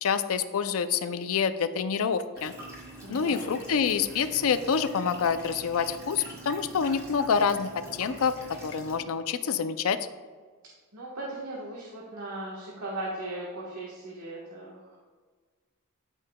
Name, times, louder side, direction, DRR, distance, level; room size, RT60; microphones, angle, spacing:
voice 1, 0.0-2.5 3.1-8.4 8.6-10.0, left 6 dB, 70° left, 11 dB, 0.4 m, -27 dB
sound 1, 2.3-8.9, right 1 dB, 15° right, 2.2 m, -45 dB
voice 2, 3.0-3.5 10.9-15.0, right 2 dB, 75° right, -5 dB, 1.3 m, -38 dB
12.0 x 5.5 x 2.2 m, 1.5 s
head